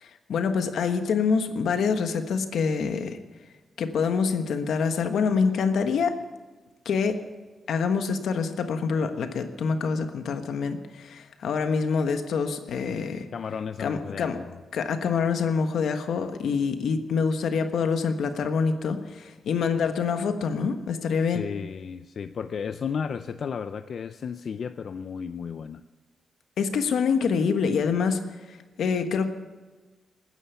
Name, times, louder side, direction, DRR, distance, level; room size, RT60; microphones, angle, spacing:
voice 1, 0.0-3.2 3.8-6.2 6.8-7.2 7.7-13.3 13.8-14.4 14.7-21.4 26.6-29.3, left 5 dB, 80° left, 7 dB, 1.4 m, -26 dB
voice 2, 13.3-14.6 21.3-25.8, left 6 dB, 60° left, 10 dB, 0.4 m, -33 dB
20.5 x 9.8 x 7.0 m, 1.3 s
wide cardioid pair, 125°, 0 cm